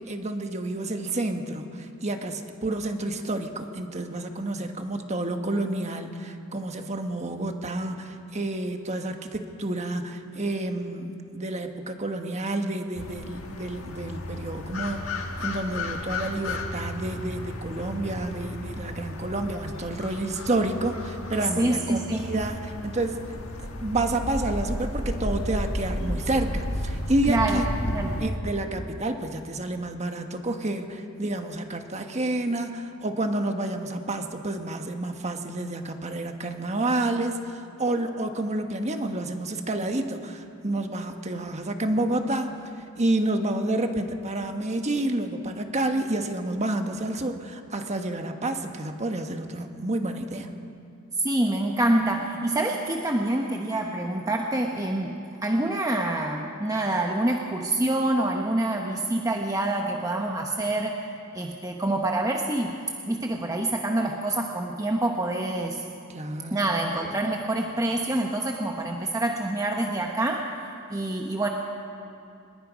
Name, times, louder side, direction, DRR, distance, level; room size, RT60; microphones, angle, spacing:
voice 1, 0.0-23.2 23.6-27.7 28.2-42.5 43.0-50.5 66.1-66.6, right 2 dB, 30° right, 5 dB, 1.4 m, -29 dB
sound 1, 13.0-28.3, left 1 dB, 65° left, 1.8 m, -33 dB
voice 2, 21.6-22.2 27.3-27.6 27.9-28.2 51.2-60.9 61.3-62.8 63.1-65.8 66.5-70.4 70.9-71.5, right 1 dB, 15° right, 1 dB, 1.0 m, -26 dB
24.5 x 21.0 x 5.2 m, 2.7 s
head